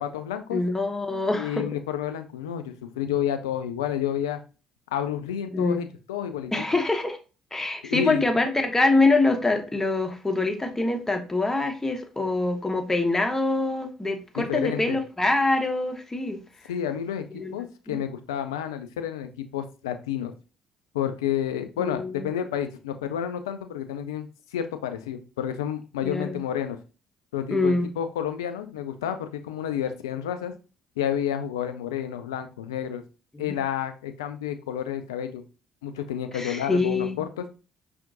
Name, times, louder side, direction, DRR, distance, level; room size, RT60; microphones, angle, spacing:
voice 1, 0.0-0.6 1.3-4.4 4.9-6.5 7.8-8.3 14.4-15.0 16.7-20.3 20.9-26.8 27.3-30.5 31.0-33.0 33.4-35.4 35.8-37.4, left 9 dB, 80° left, 8 dB, 0.4 m, -30 dB
voice 2, 0.5-1.6 5.5-5.8 6.5-7.2 7.5-16.4 17.3-17.6 17.9-18.0 21.8-22.3 26.0-26.4 27.5-27.9 33.3-33.6 36.3-37.2, left 2 dB, 15° left, 5 dB, 1.0 m, -25 dB
5.7 x 2.5 x 2.5 m, 0.34 s
hypercardioid pair, 50°, 2 cm